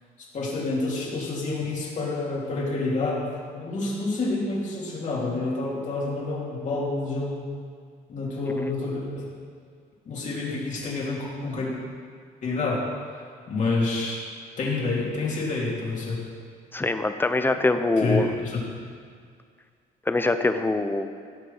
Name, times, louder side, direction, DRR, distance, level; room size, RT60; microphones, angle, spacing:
voice 1, 0.3-7.4 8.1-9.3 10.1-11.7 12.4-12.9 13.5-14.2 14.6-16.2 18.0-18.6, left 3 dB, 45° left, -4 dB, 3.5 m, -28 dB
voice 2, 16.7-18.3 20.1-21.1, left 2 dB, 10° left, 9 dB, 0.7 m, -24 dB
16.0 x 6.6 x 5.6 m, 2.1 s
cardioid pair, 110°, 17 cm